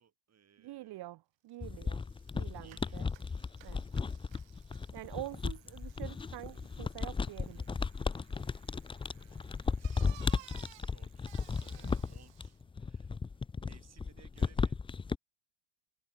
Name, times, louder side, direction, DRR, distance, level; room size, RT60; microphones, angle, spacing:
voice 1, 0.0-1.1 2.6-3.0 9.1-9.5 9.8-11.3 11.6-14.8, right 8 dB, 35° right, 7.0 m, -63 dB
voice 2, 0.6-2.0 2.3-3.1 3.6-3.8 4.9-7.8 11.8-12.0, right 16 dB, 60° right, 1.1 m, -46 dB
Bicycle, 1.5-1.6 1.8-12.6, right 16 dB, 80° right, 3.5 m, -60 dB
sound 1, 1.6-15.2, left 5 dB, 15° left, 0.3 m, -35 dB
cardioid pair, 165°, 44 cm